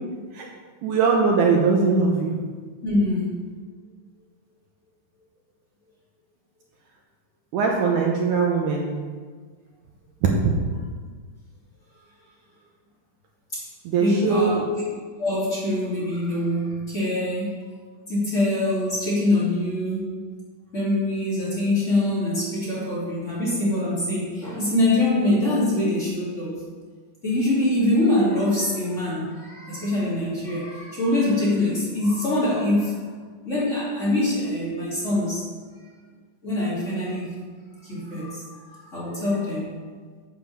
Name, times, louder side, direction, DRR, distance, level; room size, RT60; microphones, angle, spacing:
voice 1, 0.8-2.4 7.5-8.9 10.2-10.5 13.8-14.6, right 5 dB, 70° right, -1 dB, 2.2 m, -21 dB
voice 2, 2.8-3.3 13.5-13.6 14.0-14.6 15.2-17.6 18.1-20.1 20.7-26.5 27.2-33.0 33.4-35.4 36.4-37.3 37.8-39.7, left 1 dB, 20° left, -9 dB, 2.8 m, -24 dB
8.2 x 7.3 x 5.7 m, 1.5 s
omnidirectional pair, 4.1 m